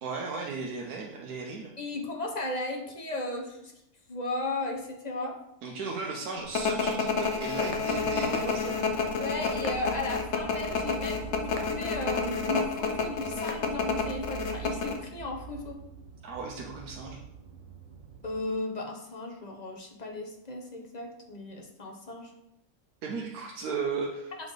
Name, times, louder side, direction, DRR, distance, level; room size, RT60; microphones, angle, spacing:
voice 1, 0.0-1.7 5.6-8.8 16.2-17.2 23.0-24.3, right 4 dB, 90° right, 0 dB, 1.4 m, -35 dB
voice 2, 1.8-3.7 4.1-5.4 9.2-15.8 18.2-22.3, left 2 dB, 30° left, 1 dB, 1.0 m, -35 dB
sound 1, 6.5-15.0, left 5 dB, 55° left, 1.1 m, -29 dB
sound 2, 7.6-18.4, right 10 dB, 70° right, 1.3 m, -45 dB
7.3 x 4.2 x 5.0 m, 0.81 s
omnidirectional pair, 1.5 m